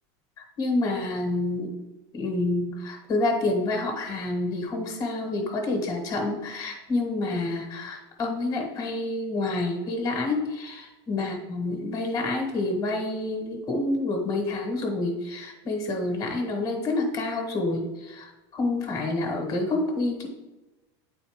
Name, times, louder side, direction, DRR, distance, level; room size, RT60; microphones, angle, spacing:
voice 1, 0.4-1.8 2.1-20.3, left 2 dB, 25° left, 2 dB, 1.4 m, -28 dB
9.9 x 4.1 x 3.6 m, 1.0 s
supercardioid pair, 155°, 14 cm